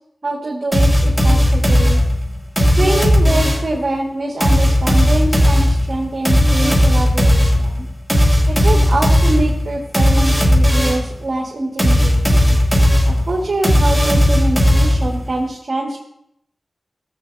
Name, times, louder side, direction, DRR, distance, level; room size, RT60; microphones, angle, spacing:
voice 1, 0.2-2.0 2.6-7.9 8.5-12.6 13.1-16.0, right 2 dB, 50° right, -3 dB, 1.9 m, -24 dB
sound 1, 0.7-3.8 4.4-11.1 11.8-15.3, equal, 5° left, 2.6 m, -15 dB
16.5 x 8.4 x 2.7 m, 0.74 s
wide cardioid pair, 70°, 0 cm